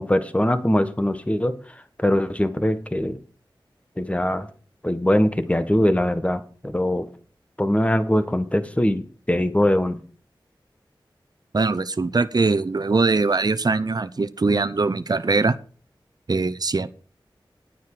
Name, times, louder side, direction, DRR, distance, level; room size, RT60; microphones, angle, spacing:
voice 1, 0.0-1.5 2.0-3.2 4.0-4.5 4.8-7.1 7.6-10.0, left 1 dB, 15° left, 10 dB, 1.5 m, -22 dB
voice 2, 11.5-15.5 16.3-16.9, right 3 dB, 50° right, 13 dB, 0.8 m, -22 dB
10.5 x 9.3 x 5.0 m, 0.39 s
wide cardioid pair, 50°, 9 cm